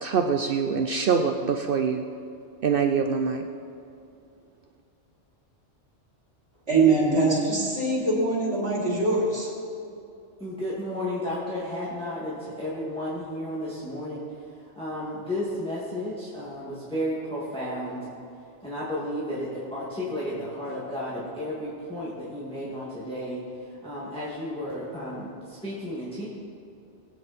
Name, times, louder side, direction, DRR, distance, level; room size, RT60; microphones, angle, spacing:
voice 1, 0.0-2.0 2.6-3.5, right 6 dB, 60° right, 5 dB, 0.7 m, -24 dB
voice 2, 6.7-9.5, right 3 dB, 75° right, -7 dB, 3.5 m, -23 dB
voice 3, 10.4-18.1 18.6-26.3, left 1 dB, 5° left, -9 dB, 2.3 m, -33 dB
20.0 x 8.8 x 4.4 m, 2.6 s
omnidirectional pair, 1.2 m